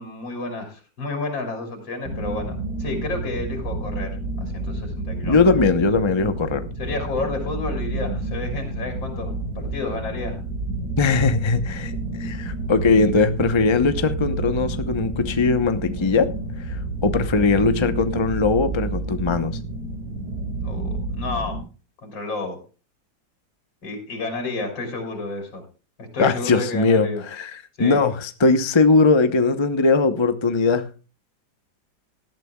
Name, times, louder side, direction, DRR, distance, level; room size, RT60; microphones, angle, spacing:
voice 1, 0.0-4.1 4.4-5.5 6.8-10.4 20.6-21.6 22.0-22.6 23.8-25.6 26.0-27.2 27.8-28.0, left 3 dB, 85° left, 4 dB, 4.1 m, -31 dB
sound 1, 2.0-21.6, right 2 dB, 60° right, 5.6 m, -29 dB
voice 2, 5.2-6.7 11.0-16.3 16.7-19.6 26.2-27.5 27.8-30.9, left 4 dB, 30° left, 10 dB, 0.5 m, -20 dB
18.5 x 12.5 x 2.3 m, 0.33 s
omnidirectional pair, 2.0 m